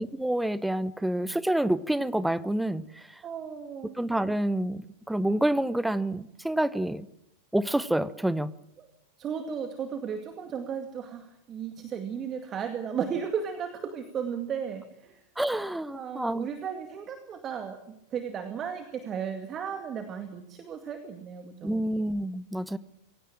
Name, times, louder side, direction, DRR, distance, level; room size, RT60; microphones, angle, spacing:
voice 1, 0.0-2.9 4.0-4.8 5.1-7.1 7.5-8.5 15.4-16.5 21.6-22.8, right 1 dB, 5° right, 17 dB, 0.9 m, -28 dB
voice 2, 3.2-4.0 8.8-8.9 9.2-15.2 15.9-21.8, right 7 dB, 25° right, 7 dB, 2.2 m, -35 dB
23.5 x 17.0 x 8.9 m, 0.77 s
figure-of-eight pair, 90°, 0 cm